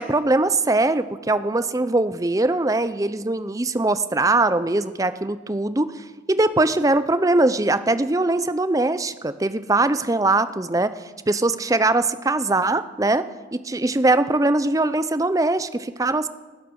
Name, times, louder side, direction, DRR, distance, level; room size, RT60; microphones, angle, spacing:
voice 1, 0.0-10.9 11.3-16.3, right 2 dB, 20° right, 13 dB, 0.5 m, -21 dB
20.0 x 11.0 x 6.3 m, 1.3 s
head